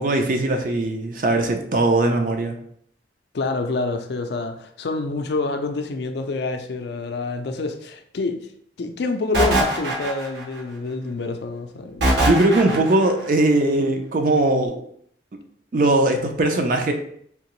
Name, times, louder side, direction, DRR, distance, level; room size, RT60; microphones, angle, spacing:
voice 1, 0.0-2.6 12.2-14.8 15.7-16.9, right 2 dB, 45° right, 0.4 m, -20 dB
voice 2, 3.3-8.5 8.8-12.1, left 3 dB, 60° left, 0.4 m, -27 dB
sound 1, 9.3-10.6 12.0-13.1, right 1 dB, 65° right, 0.9 m, -21 dB
3.5 x 2.8 x 3.0 m
head